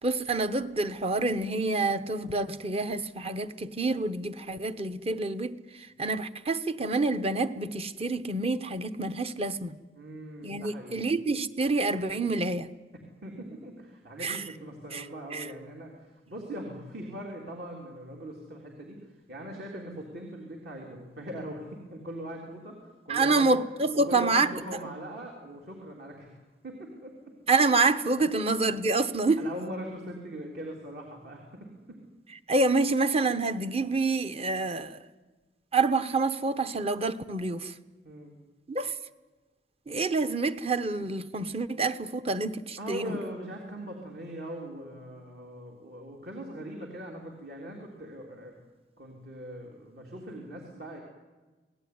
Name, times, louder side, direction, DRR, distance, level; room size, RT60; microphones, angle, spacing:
voice 1, 0.0-5.6 6.0-9.8 10.4-12.7 14.2-14.4 14.9-15.0 15.3-15.5 23.1-24.5 27.5-29.4 32.5-35.0 35.7-37.7 38.7-38.9 39.9-43.2, right 3 dB, 35° right, 1.1 m, -27 dB
voice 2, 9.9-11.1 13.2-23.5 23.9-27.3 28.3-28.4 29.4-32.0 38.0-38.3 42.8-48.6 49.0-51.0, right 1 dB, 60° right, 3.5 m, -41 dB
28.0 x 18.5 x 9.6 m
head